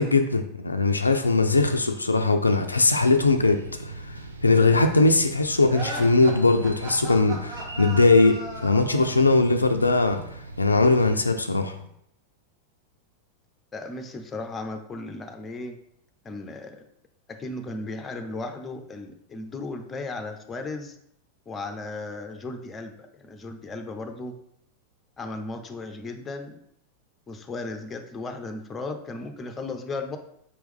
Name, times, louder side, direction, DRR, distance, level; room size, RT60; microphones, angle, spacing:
voice 1, 0.0-3.9 4.4-10.2 10.6-11.8, left 3 dB, 80° left, 6 dB, 0.3 m, -20 dB
sound 1, 2.6-11.3, right 2 dB, 80° right, 0.5 m, -41 dB
sound 2, 5.7-9.2, right 2 dB, 35° right, 1.4 m, -36 dB
voice 2, 13.7-15.8 16.2-16.8 17.3-21.0 21.5-24.3 25.2-26.6 27.3-30.2, left 3 dB, 20° left, 6 dB, 0.5 m, -35 dB
4.6 x 3.0 x 3.4 m, 0.72 s
figure-of-eight pair, 90°, 0 cm